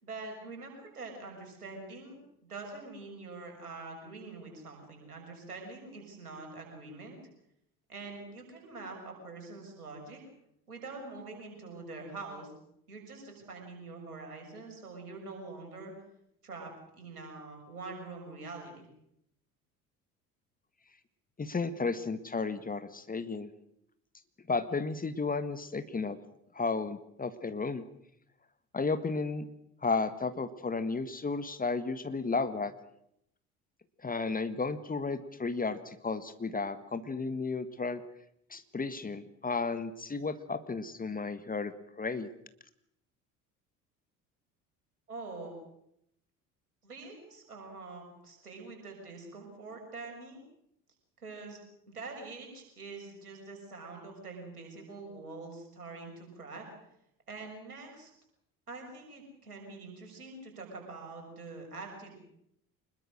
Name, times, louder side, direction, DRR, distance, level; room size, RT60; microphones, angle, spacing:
voice 1, 0.0-7.2 7.9-10.2 10.7-12.5 12.9-15.9 16.4-18.9 45.1-45.6 46.8-50.4 51.2-51.6 51.9-56.6 57.3-58.1 58.7-62.2, right 3 dB, 80° right, 2 dB, 6.5 m, -45 dB
voice 2, 21.4-23.5 24.5-26.2 26.5-27.8 28.7-29.5 29.8-32.7 34.0-38.0 38.5-41.7 42.0-42.3, left 4 dB, 20° left, 11 dB, 1.7 m, -33 dB
25.0 x 21.5 x 6.4 m, 0.77 s
figure-of-eight pair, 55°, 44 cm